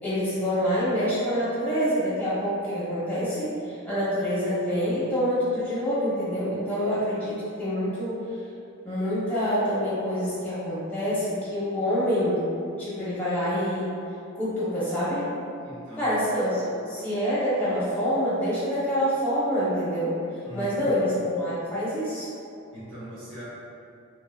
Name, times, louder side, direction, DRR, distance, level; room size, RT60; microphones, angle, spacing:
voice 1, 0.0-8.2 8.8-12.4 12.8-13.9 14.3-15.3 16.0-20.2 20.5-22.3, equal, 10° left, -11 dB, 1.1 m, -26 dB
voice 2, 15.6-16.2 20.4-20.9 22.7-23.4, right 1 dB, 60° right, -11 dB, 1.1 m, -40 dB
3.1 x 2.8 x 2.4 m, 2.5 s
head